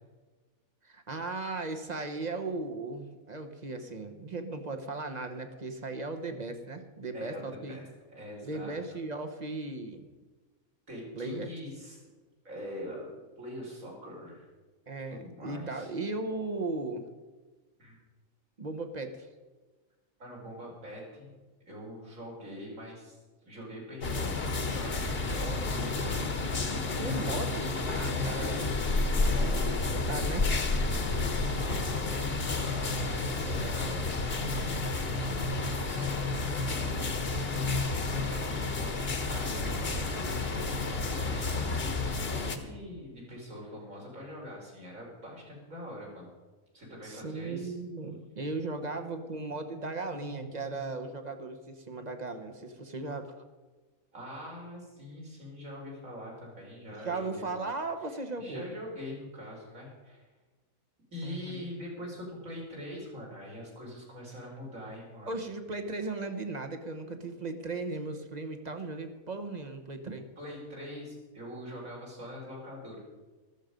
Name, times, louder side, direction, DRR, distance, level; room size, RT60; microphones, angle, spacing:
voice 1, 0.8-7.8 8.4-10.1 11.1-11.5 14.9-17.0 18.6-19.3 27.0-28.7 29.2-30.5 47.0-53.3 57.0-58.7 61.2-61.7 65.3-70.3, right 3 dB, 35° right, 7 dB, 1.1 m, -37 dB
voice 2, 8.1-8.7 10.9-12.0 12.4-14.5 15.1-15.9 17.8-18.0 20.2-21.3 21.7-23.2 23.4-27.3 28.1-29.6 30.8-37.5 37.8-42.0 42.3-46.3 46.7-47.7 54.1-57.5 58.4-60.2 61.1-65.3 70.1-73.0, equal, 70° right, -3 dB, 4.6 m, -44 dB
sound 1, 24.0-42.6, left 3 dB, 45° left, 1.4 m, -30 dB
13.5 x 13.5 x 5.2 m, 1.3 s
omnidirectional pair, 1.5 m